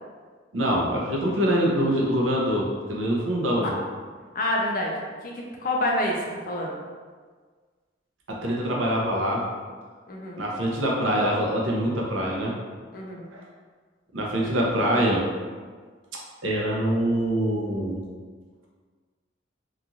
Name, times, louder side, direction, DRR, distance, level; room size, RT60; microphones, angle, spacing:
voice 1, 0.5-3.7 8.3-9.4 10.4-12.5 13.3-13.4 14.1-15.3 16.4-18.0, equal, 90° right, -2 dB, 0.6 m, -24 dB
voice 2, 4.3-5.3 5.6-6.1 6.5-6.8 10.1-10.4 12.9-13.3, left 1 dB, 45° left, -1 dB, 0.5 m, -27 dB
2.9 x 2.4 x 2.6 m, 1.5 s
head